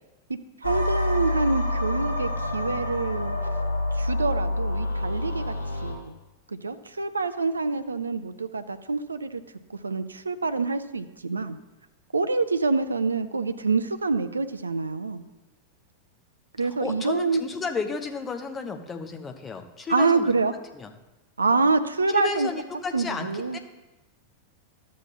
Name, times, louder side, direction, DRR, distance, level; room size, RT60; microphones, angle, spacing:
voice 1, 0.3-3.3 4.0-5.5 5.8-6.1 6.6-9.4 9.8-11.6 12.1-15.2 16.6-17.4 19.9-20.5 21.4-22.5 22.9-23.6, right 3 dB, 75° right, 11 dB, 0.4 m, -26 dB
sound 1, 0.6-5.9, left 2 dB, 80° left, 1.3 m, -27 dB
voice 2, 16.6-20.3 20.7-20.9 22.1-23.6, left 4 dB, 20° left, 5 dB, 0.9 m, -33 dB
13.0 x 7.3 x 2.9 m, 1.0 s
figure-of-eight pair, 90°, 0 cm